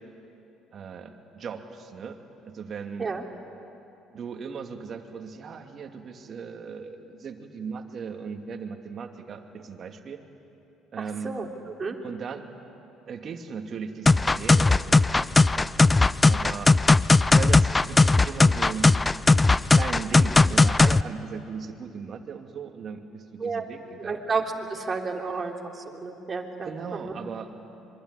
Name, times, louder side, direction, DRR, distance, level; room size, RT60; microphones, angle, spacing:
voice 1, 0.7-3.1 4.1-10.2 10.9-11.4 12.0-12.5 13.1-15.7 16.2-16.8 17.3-19.0 19.7-24.2 26.6-27.5, right 6 dB, 50° right, 5 dB, 2.5 m, -37 dB
voice 2, 11.0-12.0 23.4-23.6 24.0-27.1, right 4 dB, 35° right, 1 dB, 3.6 m, -32 dB
sound 1, 14.1-21.0, left 3 dB, 20° left, 0.6 m, -18 dB
25.5 x 23.0 x 9.8 m, 2.9 s
hypercardioid pair, 60°, 0 cm